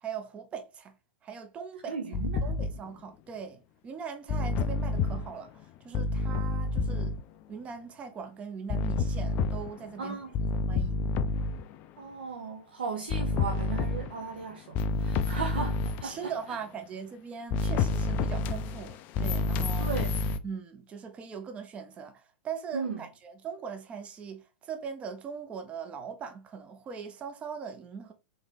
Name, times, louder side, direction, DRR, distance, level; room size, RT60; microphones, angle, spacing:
voice 1, 0.0-0.9 1.2-2.0 2.4-7.1 7.5-10.2 10.7-11.1 16.0-19.9 20.4-28.1, right 6 dB, 20° right, 0.7 m, -40 dB
voice 2, 1.9-2.4 10.0-10.3 12.0-16.6 19.8-20.2 22.7-23.0, right 5 dB, 65° right, 0.8 m, -36 dB
sound 1, 2.1-2.8 4.3-5.3 5.9-7.2 8.7-9.9 10.3-11.7 13.1-14.2 14.7-16.1 17.5-20.4, left 3 dB, 35° left, 0.4 m, -29 dB
3.6 x 3.4 x 3.4 m
figure-of-eight pair, 105°, 6 cm